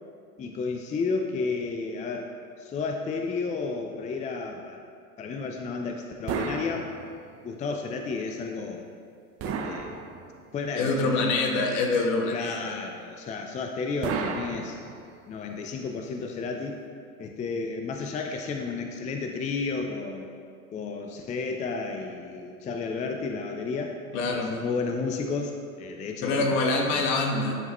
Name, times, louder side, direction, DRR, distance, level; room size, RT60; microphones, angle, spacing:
voice 1, 0.4-4.8 5.2-6.9 7.4-8.9 9.4-10.0 10.5-11.4 12.3-14.8 15.3-16.8 17.2-20.3 20.7-24.0 24.3-25.5 25.8-27.0, left 4 dB, 15° left, 3 dB, 0.5 m, -32 dB
sound 1, 6.3-7.5 9.4-10.6 14.0-15.3, right 5 dB, 35° right, 0.7 m, -33 dB
voice 2, 10.7-12.6 24.1-24.6 26.2-27.6, left 3 dB, 60° left, 1 dB, 1.4 m, -25 dB
10.5 x 5.6 x 3.1 m, 2.2 s
hypercardioid pair, 95°, 43 cm